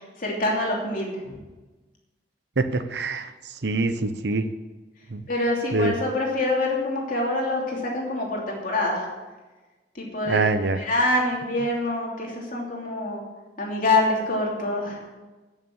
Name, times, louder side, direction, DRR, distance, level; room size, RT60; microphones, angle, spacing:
voice 1, 0.0-1.3 5.3-9.1 10.0-10.5 10.7-13.2 13.6-15.0, left 2 dB, 50° left, -2 dB, 2.9 m, -25 dB
voice 2, 2.6-3.3 3.6-4.5 5.1-5.2 5.7-5.9 10.3-10.8, right 3 dB, 65° right, 11 dB, 0.9 m, -24 dB
13.0 x 6.6 x 8.7 m, 1.2 s
head